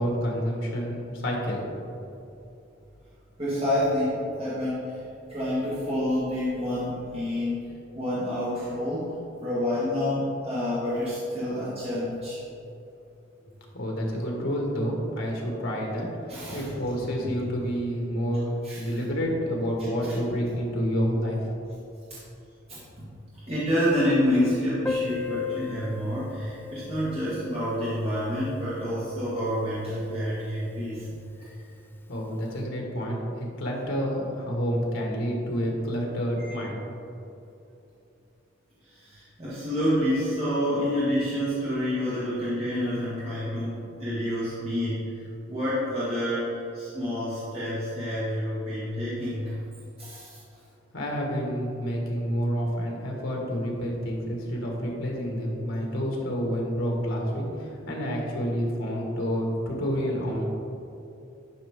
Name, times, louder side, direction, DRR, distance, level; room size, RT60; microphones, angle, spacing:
voice 1, 0.0-1.7 13.7-21.5 32.1-36.8 50.9-60.4, equal, 75° left, -1 dB, 1.8 m, -29 dB
voice 2, 3.4-5.0 5.3-7.7 7.9-9.1 9.4-12.4 16.3-16.7 17.2-17.3 18.6-19.0 22.1-22.2 22.7-23.2 23.5-31.1 31.4-31.7 36.4-36.8 38.8-49.6 50.0-50.4, left 1 dB, 30° right, -10 dB, 1.7 m, -28 dB
Piano, 24.9-30.2 30.5-30.6 30.8-30.9 31.3-31.4 32.1-32.3, left 5 dB, 10° left, 0.3 m, -37 dB
11.5 x 5.6 x 3.7 m, 2.8 s
head